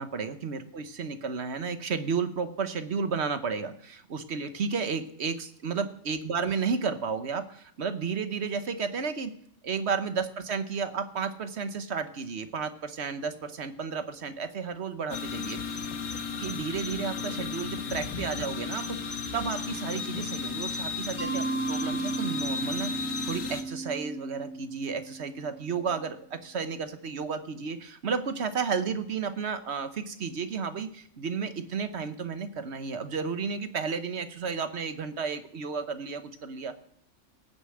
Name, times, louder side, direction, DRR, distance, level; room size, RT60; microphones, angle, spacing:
voice 1, 0.0-9.3 9.6-15.6 16.4-36.7, right 5 dB, 55° right, 10 dB, 1.2 m, -32 dB
sound 1, 15.1-23.6, left 5 dB, 70° left, 1.6 m, -34 dB
Mallet percussion, 21.2-25.9, right 3 dB, 5° right, 3.5 m, -35 dB
18.0 x 6.8 x 7.7 m, 0.65 s
omnidirectional pair, 1.4 m